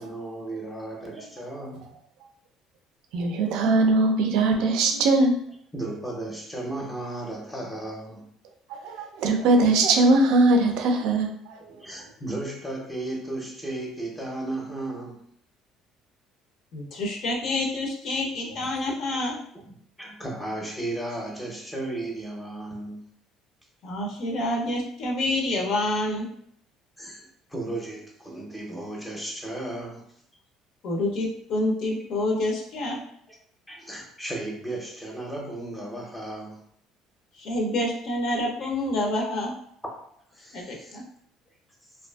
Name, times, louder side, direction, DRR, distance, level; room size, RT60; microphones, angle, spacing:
voice 1, 0.0-1.9 5.7-8.3 11.7-15.2 18.5-18.7 19.7-23.0 25.5-25.6 27.0-30.1 33.3-33.4 33.7-36.6 38.6-38.7 39.2-39.3 40.3-41.0, right 2 dB, 10° left, -2 dB, 0.5 m, -35 dB
voice 2, 3.1-5.4 8.7-11.8, right 2 dB, 75° right, 4 dB, 0.4 m, -21 dB
voice 3, 16.7-19.4 23.8-26.3 30.8-33.0 37.4-39.5 40.5-41.0, left 1 dB, 60° left, 0 dB, 0.5 m, -27 dB
2.5 x 2.3 x 2.2 m, 0.66 s
cardioid pair, 125°, 0 cm